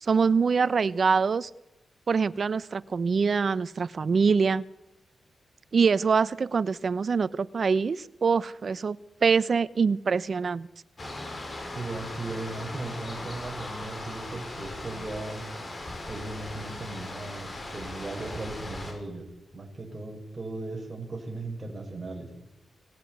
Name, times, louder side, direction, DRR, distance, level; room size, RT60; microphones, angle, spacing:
voice 1, 0.0-1.5 2.1-4.6 5.7-10.7, right 5 dB, 50° right, 17 dB, 1.0 m, -24 dB
sound 1, 11.0-18.9, left 1 dB, 35° left, 7.1 m, -39 dB
voice 2, 11.7-15.5 16.1-22.3, right 2 dB, 25° right, 1 dB, 6.5 m, -37 dB
27.0 x 19.0 x 9.6 m, 0.97 s
wide cardioid pair, 100°, 0 cm